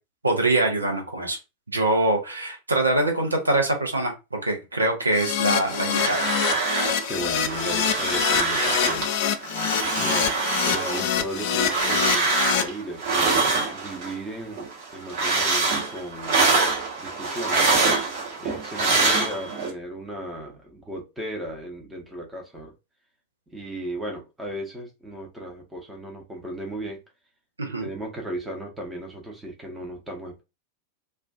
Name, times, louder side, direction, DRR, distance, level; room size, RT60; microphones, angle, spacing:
voice 1, 0.2-1.4 1.7-6.3 27.6-27.9, right 2 dB, 80° right, 0.7 m, -24 dB
Keyboard (musical), 5.1-12.6, left 9 dB, 45° left, 0.3 m, -26 dB
sound 1, 5.7-7.1 7.3-9.1 9.4-14.2 14.5-19.7, right 3 dB, 50° right, 1.1 m, -24 dB
voice 2, 7.1-9.4 9.9-10.4 10.6-13.4 13.7-16.4 17.0-17.7 18.4-22.7 23.5-27.0 27.8-30.4, right 1 dB, 10° right, 0.7 m, -35 dB
2.4 x 2.3 x 2.3 m
figure-of-eight pair, 90°, 0 cm